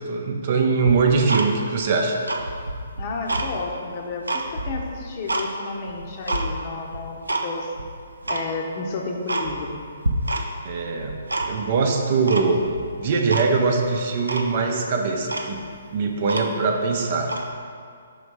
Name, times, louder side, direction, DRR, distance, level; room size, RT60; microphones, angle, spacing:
voice 1, 0.1-2.2 10.6-11.2 11.5-12.7 13.0-15.6 15.9-17.3, right 4 dB, 45° right, 2 dB, 0.7 m, -22 dB
Tick-tock, 0.8-1.9 2.2-3.5 3.9-5.5 5.9-6.5 6.9-7.5 7.7-7.8 8.2-8.5 8.9-9.0 9.3-9.8 10.0-10.7 11.0-11.8 12.3-12.8 13.3-13.5 13.8-13.9 14.3-14.5 15.0-15.1 15.3-16.8 17.2-17.5, right 2 dB, 90° right, 0.5 m, -28 dB
voice 2, 3.0-7.7 8.3-9.8, left 3 dB, 40° left, 1 dB, 0.8 m, -32 dB
5.3 x 3.9 x 4.8 m, 2.2 s
figure-of-eight pair, 140°, 0 cm